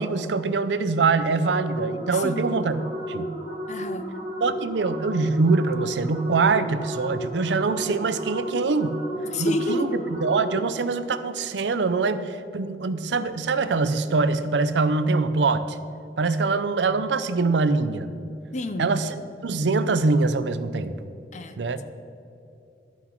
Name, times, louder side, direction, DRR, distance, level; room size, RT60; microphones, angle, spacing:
voice 1, 0.0-2.8 3.1-3.3 4.4-9.0 9.4-15.8 16.2-18.1 18.8-19.1 19.4-21.1 21.6-21.8, right 4 dB, 90° right, 13 dB, 0.5 m, -24 dB
sound 1, 1.4-10.8, equal, 25° right, 2.1 m, -33 dB
voice 2, 3.7-4.1 9.2-10.0 18.5-18.9 21.3-21.8, left 1 dB, 40° left, 9 dB, 0.6 m, -29 dB
12.0 x 6.1 x 5.9 m, 2.7 s
head